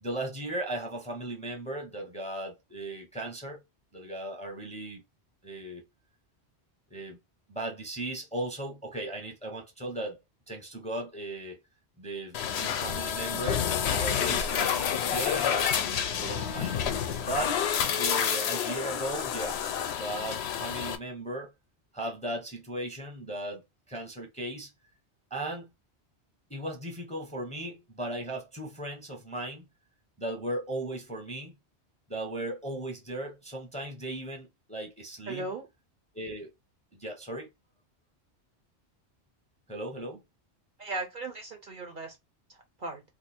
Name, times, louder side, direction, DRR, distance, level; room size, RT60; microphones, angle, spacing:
voice 1, 0.0-3.6 3.9-5.0 5.4-5.8 6.9-7.2 7.5-10.2 10.5-11.6 12.0-16.8 17.2-17.6 18.0-19.6 20.0-21.5 21.9-23.6 23.9-24.7 25.3-25.7 26.5-29.7 30.2-31.6 32.1-35.5 36.1-36.5 36.9-37.5 39.7-40.2, right 1 dB, 5° left, 0.7 m, -37 dB
sound 1, 12.3-21.0, left 8 dB, 70° left, 0.8 m, -29 dB
voice 2, 35.3-35.7 40.8-42.2 42.5-43.0, right 3 dB, 55° right, 0.7 m, -37 dB
2.5 x 2.5 x 4.2 m
omnidirectional pair, 1.1 m